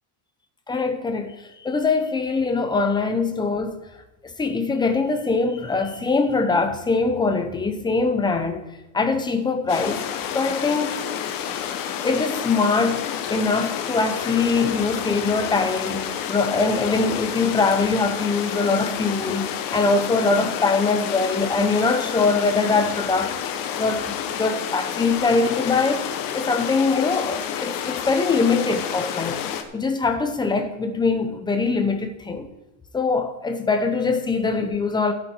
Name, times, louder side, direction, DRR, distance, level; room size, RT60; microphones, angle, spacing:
voice 1, 0.7-3.8 4.2-8.6 8.9-10.1 10.3-11.0 12.0-23.4 23.8-29.4 29.7-32.5 32.9-35.1, left 4 dB, 10° left, 0.7 m, -22 dB
sound 1, 9.7-29.6, left 9 dB, 45° left, 1.1 m, -29 dB
13.5 x 8.5 x 4.5 m
cardioid pair, 160°, 48 cm